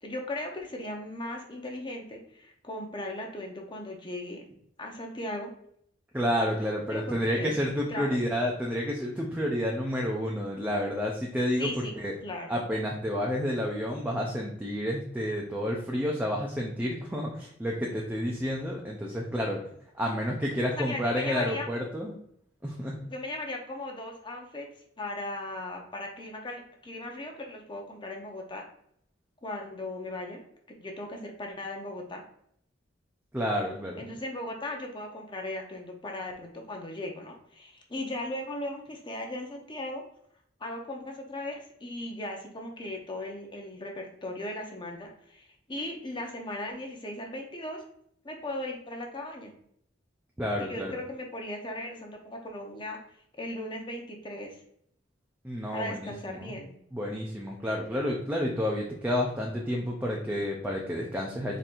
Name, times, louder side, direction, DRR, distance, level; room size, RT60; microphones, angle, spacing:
voice 1, 0.0-4.4 4.8-5.5 6.9-7.5 7.9-8.2 11.6-11.9 12.2-12.5 20.8-21.7 23.1-24.7 25.0-28.6 29.4-30.4 30.7-32.2 34.0-40.0 40.6-47.8 48.2-49.5 50.6-53.0 53.4-54.6 55.7-56.7, left 1 dB, 25° left, 1 dB, 0.8 m, -37 dB
voice 2, 6.1-12.1 12.5-19.6 19.9-22.1 22.6-23.0 33.3-34.0 50.4-50.9 55.4-56.5 56.9-61.6, equal, 10° right, -1 dB, 0.5 m, -30 dB
4.3 x 3.8 x 2.5 m, 0.68 s
head